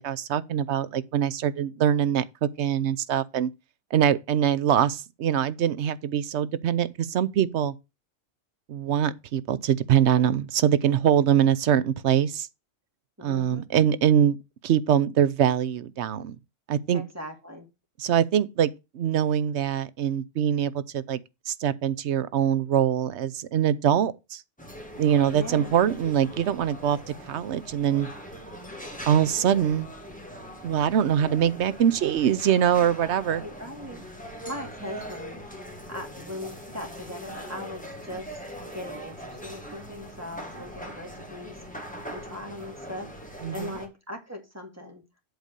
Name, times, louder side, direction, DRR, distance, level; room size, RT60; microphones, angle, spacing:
voice 1, 0.0-3.5 3.9-7.7 8.7-12.5 13.2-14.4 14.6-16.4 16.7-17.0 18.0-18.7 18.9-21.2 21.5-24.4 25.0-27.0 27.3-28.1 29.1-29.9 30.6-33.4 43.4-43.8, right 9 dB, 70° right, 1.0 m, -23 dB
voice 2, 13.2-13.7 16.9-17.7 25.3-25.7 33.4-35.4 35.9-45.0, left 1 dB, 10° right, 2.3 m, -40 dB
sound 1, 24.6-43.9, equal, 5° left, 1.9 m, -41 dB
8.1 x 4.1 x 6.6 m
omnidirectional pair, 1.3 m